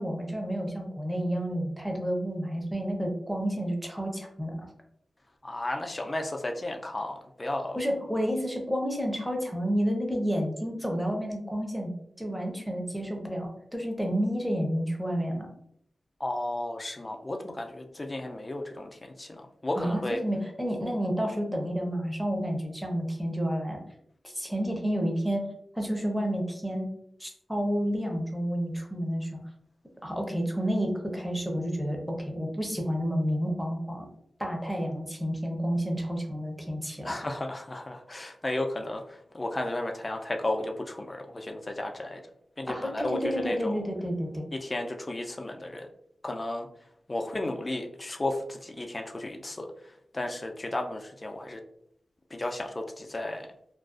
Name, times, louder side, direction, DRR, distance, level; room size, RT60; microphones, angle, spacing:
voice 1, 0.0-4.7 7.8-11.9 12.2-15.5 19.8-23.8 24.2-25.5 25.7-26.9 27.2-29.3 30.0-34.1 34.4-37.1 42.7-44.5, equal, 5° right, 1 dB, 0.7 m, -30 dB
voice 2, 5.4-7.8 16.2-20.2 37.0-42.2 42.6-43.8 44.5-45.9 46.2-46.7 47.1-51.6 52.3-53.5, left 1 dB, 30° left, 3 dB, 0.3 m, -33 dB
2.4 x 2.2 x 2.3 m, 0.71 s
cardioid pair, 50°, 0 cm